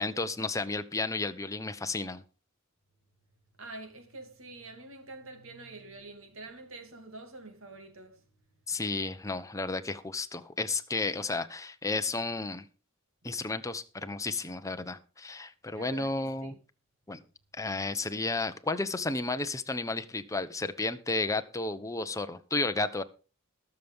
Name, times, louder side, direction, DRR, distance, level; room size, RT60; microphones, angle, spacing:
voice 1, 0.0-2.2 8.7-12.7 13.2-16.5 17.1-17.2 17.5-23.0, left 3 dB, 15° left, 0.9 m, -32 dB
voice 2, 3.6-8.2 15.7-16.6, right 2 dB, 65° right, 2.7 m, -46 dB
21.0 x 7.1 x 3.6 m
head